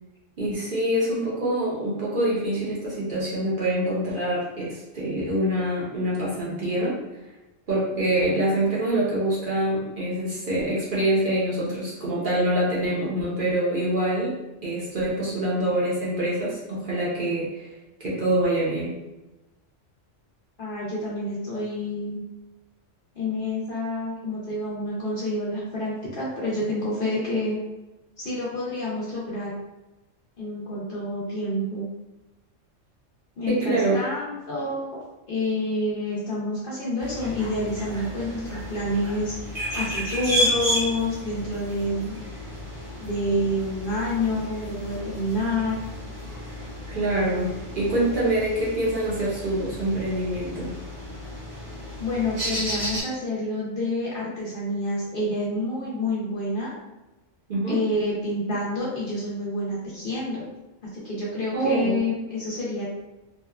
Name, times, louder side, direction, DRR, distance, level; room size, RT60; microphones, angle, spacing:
voice 1, 0.4-7.0 7.7-14.4 14.6-17.7 18.0-18.9 33.5-34.0 46.9-50.8 57.5-57.8 61.5-62.0, right 1 dB, 50° right, -7 dB, 0.7 m, -25 dB
voice 2, 20.6-22.2 23.2-27.6 28.2-29.5 30.4-31.9 33.4-35.0 35.3-39.3 39.7-42.2 43.0-45.8 52.0-56.7 57.7-60.4 60.9-62.9, left 1 dB, 55° left, -7 dB, 0.6 m, -28 dB
sound 1, 37.0-53.0, equal, 75° right, 1.3 m, -32 dB
2.8 x 2.2 x 2.2 m, 1.0 s
omnidirectional pair, 1.3 m